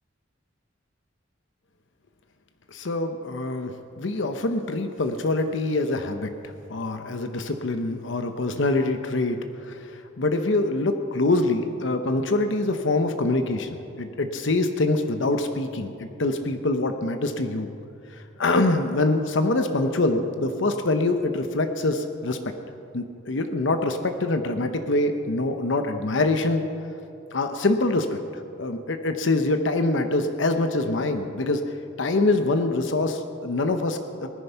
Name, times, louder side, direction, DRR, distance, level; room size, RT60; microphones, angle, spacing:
voice 1, 2.7-9.4 9.7-9.8 10.2-17.7 18.4-22.4 22.9-26.7 27.3-28.2 28.6-31.6 32.0-34.3, left 2 dB, 75° left, 7 dB, 0.8 m, -24 dB
19.0 x 10.5 x 5.7 m, 2.6 s
head